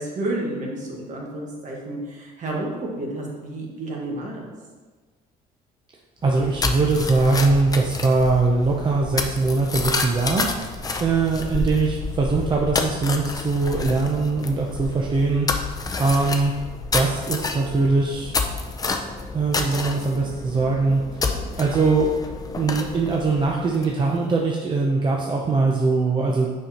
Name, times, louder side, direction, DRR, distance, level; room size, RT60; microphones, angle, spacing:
voice 1, 0.0-4.5, right 1 dB, 45° right, -1 dB, 1.5 m, -31 dB
sound 1, 6.2-24.2, left 3 dB, 20° left, 0.5 m, -29 dB
voice 2, 6.2-10.5 11.0-15.5 16.0-16.5 16.9-18.4 19.3-21.2 21.6-22.1 22.6-26.5, right 3 dB, 30° right, -1 dB, 0.6 m, -21 dB
6.5 x 5.2 x 2.9 m, 1.4 s
cardioid pair, 110°, 17 cm